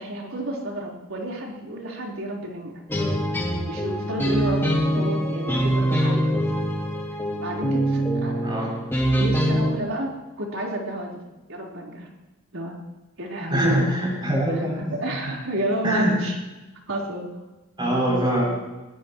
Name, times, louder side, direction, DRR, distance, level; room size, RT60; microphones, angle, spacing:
voice 1, 0.0-2.7 3.7-6.5 7.4-8.5 9.2-11.2 11.5-12.1 12.5-12.8 13.2-14.0 14.5-16.4 16.9-17.3, equal, 70° right, -2 dB, 4.5 m, -30 dB
sound 1, 2.9-9.7, equal, 10° left, 2.8 m, -24 dB
voice 2, 8.3-8.7 13.5-14.9 15.8-16.2 17.8-18.4, right 1 dB, 20° right, -3 dB, 7.8 m, -23 dB
22.0 x 20.0 x 3.2 m, 1.1 s
head